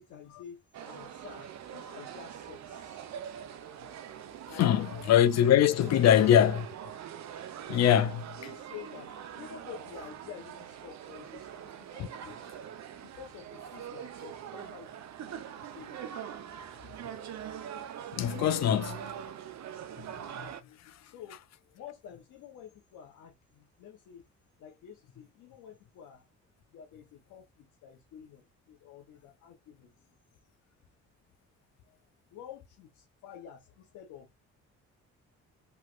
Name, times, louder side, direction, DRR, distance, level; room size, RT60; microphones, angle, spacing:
voice 1, 0.0-3.1 4.5-5.0 5.9-6.3 8.4-12.4 13.0-16.0 21.0-21.4 21.7-24.3 24.6-26.3 26.7-30.1 32.3-34.3, left 8 dB, 85° left, 0.9 m, -49 dB
sound 1, 0.7-20.6, right 9 dB, 65° right, 0.7 m, -43 dB
voice 2, 4.6-6.7 7.7-8.4 12.0-12.1 18.1-19.1 20.0-20.1 20.4-20.5 20.9-21.0, left 10 dB, 60° left, 0.5 m, -23 dB
3.2 x 3.1 x 2.4 m
cardioid pair, 90°, 30 cm